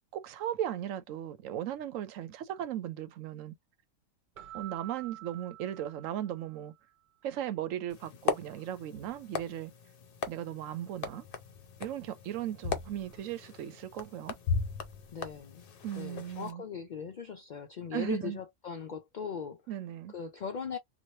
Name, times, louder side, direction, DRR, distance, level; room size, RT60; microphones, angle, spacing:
voice 1, 0.1-3.5 4.5-6.7 7.2-9.7 10.3-11.3 11.8-14.4 15.8-16.6 17.9-18.4 19.7-20.1, right 11 dB, 85° right, 1.0 m, -37 dB
Keyboard (musical), 4.4-6.8, right 15 dB, 60° right, 0.5 m, -48 dB
sound 1, 7.9-16.5, left 5 dB, 55° left, 0.8 m, -38 dB
voice 2, 15.1-15.7 15.9-19.6 20.1-20.8, left 6 dB, 70° left, 0.4 m, -39 dB
3.1 x 2.4 x 2.7 m
omnidirectional pair, 1.3 m